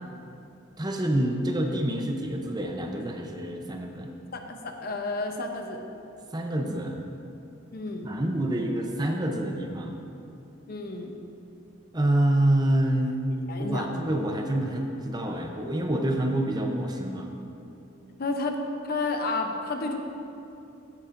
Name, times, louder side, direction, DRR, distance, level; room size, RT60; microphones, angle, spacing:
voice 1, 0.8-4.1 6.3-7.0 8.0-10.0 11.9-13.2 13.6-17.3, right 1 dB, 20° right, 3 dB, 0.6 m, -27 dB
voice 2, 4.3-5.8 7.7-8.1 10.7-11.2 13.5-13.9 18.2-20.0, left 3 dB, 50° left, 4 dB, 0.7 m, -31 dB
15.0 x 7.2 x 2.6 m, 2.8 s
head